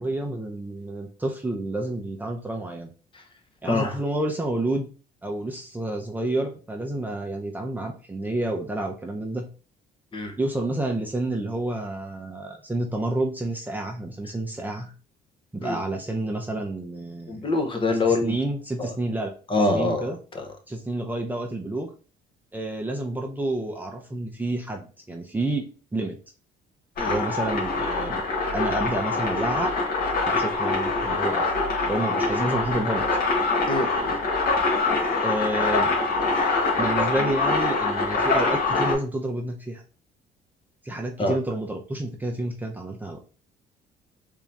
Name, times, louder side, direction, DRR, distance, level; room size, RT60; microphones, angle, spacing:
voice 1, 0.0-2.9 3.6-4.9 5.2-9.5 10.4-14.9 15.5-17.5 18.1-19.3 19.7-20.2 20.7-21.9 22.5-26.2 27.0-28.2 28.5-29.7 30.3-31.4 31.9-33.2 35.2-35.9 36.8-39.8 40.8-43.2, right 1 dB, 10° right, 1 dB, 0.6 m, -29 dB
voice 2, 17.3-18.3 18.8-18.9 19.5-20.4 27.0-27.2 33.7-34.2 36.7-36.8 41.2-41.4, left 2 dB, 30° left, 5 dB, 0.8 m, -25 dB
sound 1, 27.0-38.9, left 3 dB, 60° left, 1.6 m, -24 dB
3.7 x 2.8 x 3.3 m, 0.36 s
cardioid pair, 110°, 17 cm